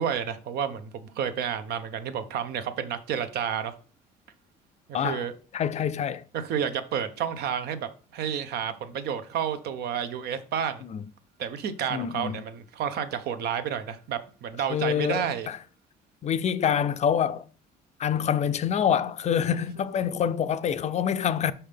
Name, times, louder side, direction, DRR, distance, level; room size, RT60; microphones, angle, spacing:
voice 1, 0.0-3.7 5.0-5.3 6.3-10.8 11.4-15.5, right 8 dB, 70° right, 0.8 m, -30 dB
voice 2, 4.9-5.3 5.5-6.2 10.9-11.0 11.9-12.4 14.7-15.6 16.2-17.4 18.0-21.5, left 8 dB, 40° left, 0.4 m, -26 dB
5.6 x 5.5 x 3.4 m
cardioid pair, 110°, 17 cm